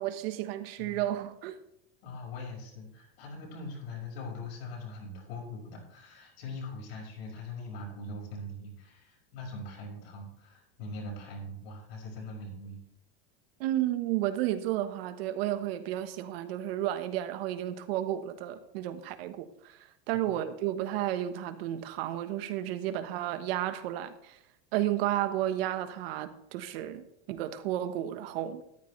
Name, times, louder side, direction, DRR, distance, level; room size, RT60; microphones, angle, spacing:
voice 1, 0.0-1.6 13.6-24.4 24.7-28.6, right 13 dB, 75° right, 1.3 m, -32 dB
voice 2, 2.0-12.8 20.1-20.4, left 2 dB, 85° left, 5.9 m, -42 dB
13.5 x 12.0 x 3.3 m
supercardioid pair, 140°, 30 cm